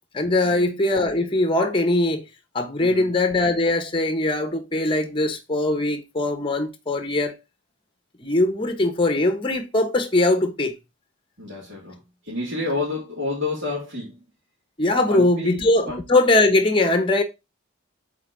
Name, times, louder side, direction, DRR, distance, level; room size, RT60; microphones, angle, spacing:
voice 1, 0.1-2.2 2.5-7.4 8.2-10.7 14.8-17.2, left 2 dB, 25° left, 0.8 m, -21 dB
voice 2, 2.8-3.2 11.4-12.0 12.2-14.2 15.1-16.0, left 2 dB, 60° right, 2.8 m, -30 dB
8.0 x 3.9 x 3.8 m
head